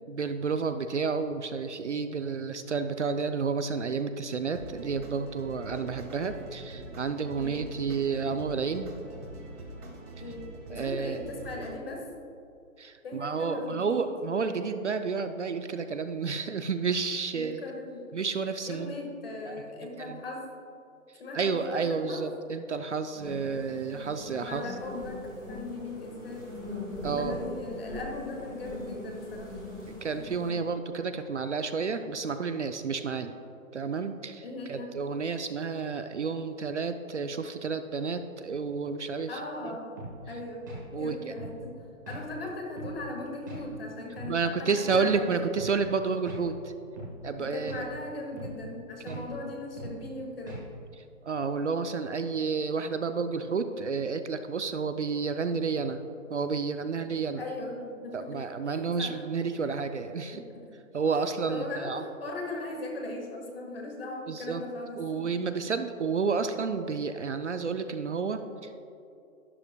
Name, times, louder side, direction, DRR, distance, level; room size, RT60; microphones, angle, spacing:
voice 1, 0.1-8.9 10.7-11.2 12.8-17.6 18.1-18.9 19.5-19.6 20.0-20.2 21.3-24.6 27.0-27.4 30.0-33.3 33.7-39.4 39.6-39.8 40.9-41.4 44.3-46.7 47.2-47.9 49.1-49.4 51.2-56.0 56.3-57.4 58.1-60.4 60.9-62.1 64.3-64.6 65.0-68.8, right 5 dB, 55° right, 9 dB, 0.5 m, -31 dB
sound 1, 4.5-11.8, right 2 dB, 80° right, 2.1 m, -44 dB
voice 2, 10.2-12.0 13.0-14.1 17.3-18.1 18.7-20.5 21.2-22.2 24.4-26.5 27.1-29.5 34.4-34.9 39.3-40.0 40.3-40.7 41.0-41.7 42.0-45.4 47.4-50.6 57.4-59.2 60.3-60.8 61.1-65.4, left 2 dB, 40° left, 1 dB, 1.7 m, -39 dB
sound 2, 23.1-30.5, left 1 dB, 15° left, 1.6 m, -41 dB
sound 3, 40.0-40.2 40.7-40.8 41.4-41.5 42.1-42.2 42.8-43.0 43.5-43.6 44.2-44.3 44.9-45.1 45.6-45.7 46.3-46.4 47.0-47.1 47.7-47.9 48.4-48.6 49.1-49.2 49.8-50.0 50.5-50.7, right 1 dB, 15° right, 1.1 m, -40 dB
12.0 x 11.0 x 2.2 m, 2.7 s
hypercardioid pair, 175°, 43 cm